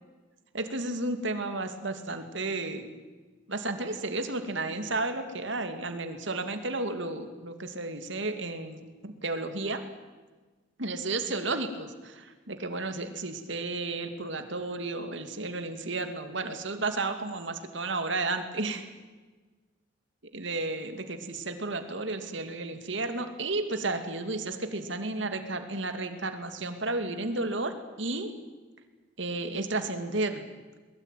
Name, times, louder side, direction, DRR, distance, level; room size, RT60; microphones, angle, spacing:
voice 1, 0.5-2.9 3.5-9.8 10.8-18.9 20.3-28.3 29.2-30.4, right 2 dB, 70° right, 7 dB, 2.6 m, -32 dB
22.0 x 21.5 x 9.3 m, 1.3 s
head